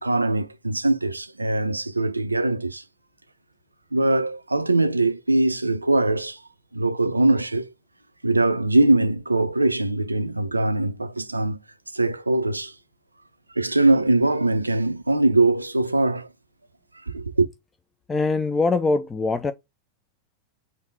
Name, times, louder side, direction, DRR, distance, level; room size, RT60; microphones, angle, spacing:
voice 1, 0.0-2.8 3.9-6.4 6.7-7.7 8.2-11.6 11.9-12.7 13.6-16.3 17.1-17.5, right 2 dB, 80° right, 0.3 m, -22 dB
voice 2, 18.1-19.5, left 3 dB, 15° left, 0.3 m, -22 dB
3.5 x 2.6 x 3.9 m
figure-of-eight pair, 90°, 0 cm